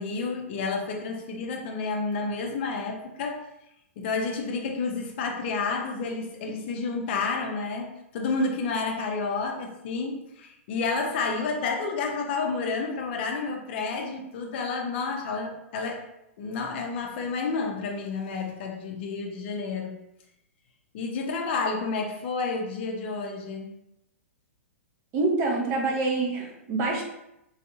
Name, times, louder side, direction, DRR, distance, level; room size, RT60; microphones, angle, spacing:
voice 1, 0.0-3.4 4.0-16.0 16.4-20.0 20.9-23.7, left 4 dB, 50° left, 2 dB, 0.6 m, -30 dB
voice 2, 25.1-27.0, right 3 dB, 35° right, 0 dB, 0.7 m, -26 dB
3.2 x 2.6 x 2.6 m, 0.85 s
figure-of-eight pair, 110°, 8 cm